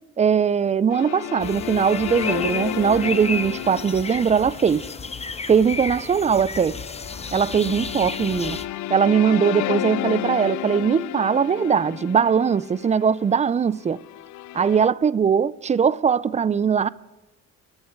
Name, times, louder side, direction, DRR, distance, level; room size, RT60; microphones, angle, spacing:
voice 1, 0.2-4.8 5.5-6.8 7.3-8.6 8.9-14.0 14.5-16.9, right 7 dB, 25° right, 0.4 m, -20 dB
sound 1, 0.9-14.9, left 14 dB, 70° left, 0.5 m, -32 dB
sound 2, 1.4-8.7, left 4 dB, 20° left, 0.7 m, -33 dB
23.5 x 7.9 x 4.5 m
cardioid pair, 90°, 30 cm